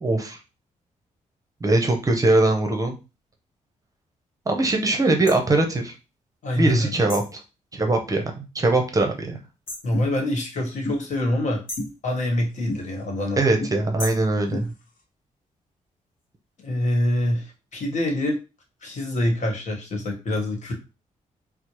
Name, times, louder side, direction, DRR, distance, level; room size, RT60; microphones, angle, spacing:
voice 1, 0.0-0.4 1.6-3.0 4.5-5.9 6.6-7.4 7.7-9.4 13.4-14.7, right 2 dB, 25° right, 3 dB, 0.7 m, -21 dB
sound 1, 5.3-5.4 7.1-7.4 9.7-9.9 11.7-12.0 14.0-14.3, left 2 dB, 40° left, 1.2 m, -35 dB
voice 2, 6.4-6.9 9.8-11.6 12.0-13.4 16.6-18.4 18.8-20.7, left 1 dB, 60° left, 2 dB, 1.2 m, -25 dB
sound 2, 9.9-10.1 10.8-11.0 11.8-11.9 12.7-12.8 13.6-13.7 14.5-14.7, left 1 dB, 85° left, 0.9 m, -30 dB
4.4 x 2.0 x 2.9 m, 0.30 s
cardioid pair, 90°, 14 cm